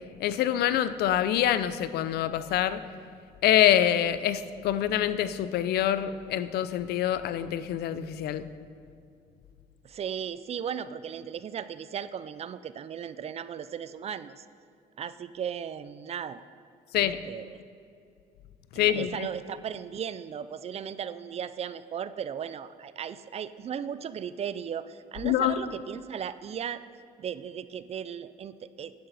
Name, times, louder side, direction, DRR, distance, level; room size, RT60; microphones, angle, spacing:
voice 1, 0.2-2.8 3.4-8.5 16.9-17.2 18.8-19.3 25.2-25.6, left 11 dB, 70° left, 13 dB, 0.5 m, -25 dB
voice 2, 9.8-14.4 15.0-16.4 17.0-17.6 18.7-26.8 27.2-28.9, right 8 dB, 40° right, 14 dB, 0.4 m, -36 dB
11.0 x 10.5 x 4.0 m, 2.4 s
cardioid pair, 110°, 17 cm